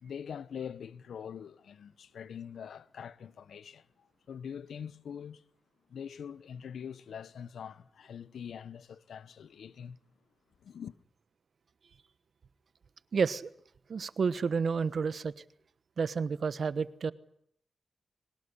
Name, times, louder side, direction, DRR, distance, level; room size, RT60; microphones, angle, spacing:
voice 1, 0.0-5.4 5.9-10.0 10.6-10.9, left 7 dB, 85° left, 0.9 m, -44 dB
voice 2, 13.1-13.5 13.9-15.3 16.0-17.1, right 5 dB, 65° right, 1.1 m, -30 dB
23.0 x 20.0 x 9.9 m
cardioid pair, 65°, 0 cm